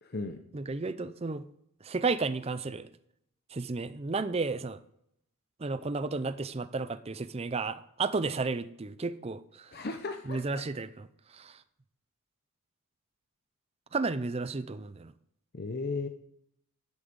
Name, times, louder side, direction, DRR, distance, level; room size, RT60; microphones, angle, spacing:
voice 1, 0.0-0.4 9.7-10.6 15.5-16.1, left 3 dB, 45° left, 5 dB, 0.7 m, -36 dB
voice 2, 0.5-1.4 1.8-2.9 3.5-4.8 5.6-9.7 10.3-11.1 11.3-11.6 13.9-15.1, right 3 dB, 25° right, 13 dB, 0.5 m, -33 dB
11.5 x 6.2 x 5.3 m, 0.73 s
head